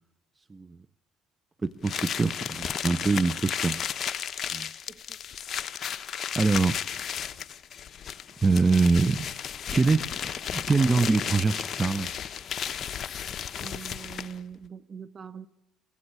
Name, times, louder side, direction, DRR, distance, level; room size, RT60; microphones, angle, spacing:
voice 1, 1.6-3.8 4.5-4.7 6.4-6.8 8.4-9.3 9.7-10.1 10.5-12.1, right 4 dB, 20° right, 0.7 m, -24 dB
sound 1, 1.8-14.4, left 8 dB, 45° left, 1.0 m, -34 dB
voice 2, 13.6-15.5, right 7 dB, 40° right, 1.1 m, -42 dB
24.0 x 16.0 x 8.8 m
cardioid pair, 95°, 0 cm